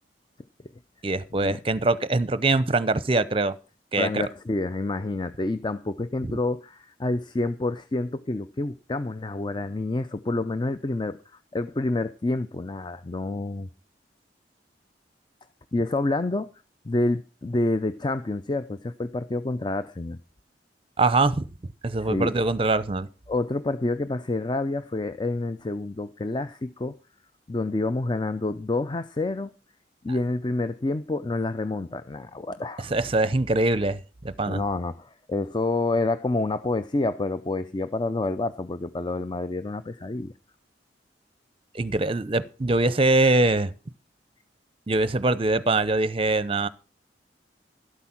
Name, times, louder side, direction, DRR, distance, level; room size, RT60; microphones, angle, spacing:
voice 1, 1.0-3.6 3.9-4.2 6.2-6.3 21.0-21.5 21.8-23.1 32.9-34.6 41.7-43.7 44.9-46.7, right 2 dB, 30° right, 0.7 m, -23 dB
voice 2, 4.0-13.7 15.7-16.5 16.8-20.2 22.0-22.3 23.3-26.9 27.5-29.5 30.0-32.9 34.5-40.3, left 2 dB, 25° left, 0.5 m, -28 dB
12.5 x 8.3 x 5.9 m
head